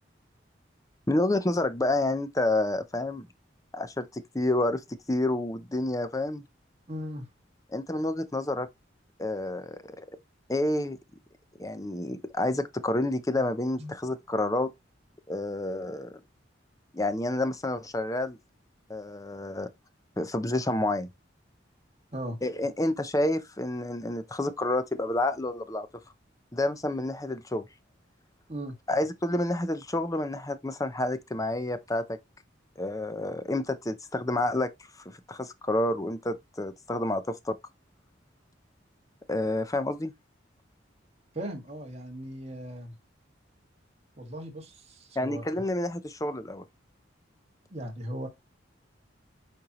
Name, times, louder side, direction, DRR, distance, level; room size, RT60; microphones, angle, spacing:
voice 1, 1.1-3.3 3.7-4.8 5.1-6.4 7.7-8.7 9.2-10.1 10.5-11.0 11.6-14.7 15.3-16.2 16.9-18.4 18.9-19.7 20.2-21.1 22.4-25.9 26.5-27.7 28.9-32.2 32.8-34.7 35.1-37.6 39.3-40.1 45.2-46.6, left 1 dB, 15° left, 0.7 m, -29 dB
voice 2, 6.9-7.3 13.8-13.9 22.1-22.4 28.5-28.7 41.3-43.0 44.2-45.6 47.7-48.3, equal, 35° right, 2.1 m, -38 dB
8.6 x 4.5 x 3.1 m
head